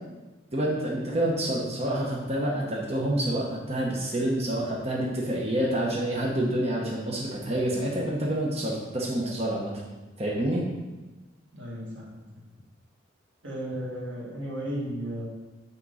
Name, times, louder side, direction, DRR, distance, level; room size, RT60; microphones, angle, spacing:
voice 1, 0.5-9.7 10.2-10.6, right 1 dB, 35° right, -3 dB, 1.0 m, -28 dB
voice 2, 11.5-12.2 13.4-15.3, equal, 75° right, -4 dB, 1.9 m, -34 dB
6.1 x 4.6 x 5.5 m, 1.2 s
head